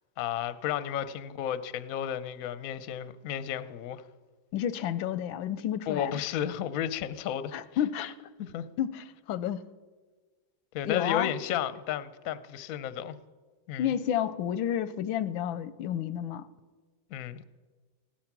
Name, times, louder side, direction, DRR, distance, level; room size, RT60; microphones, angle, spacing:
voice 1, 0.2-4.0 5.9-7.6 8.4-8.6 10.7-13.2 13.7-13.9 17.1-17.4, left 10 dB, 65° left, 0.9 m, -33 dB
voice 2, 4.5-6.2 7.5-8.2 8.8-9.6 10.8-11.3 13.8-16.5, left 10 dB, 90° left, 1.4 m, -30 dB
16.0 x 11.5 x 6.0 m
omnidirectional pair, 2.1 m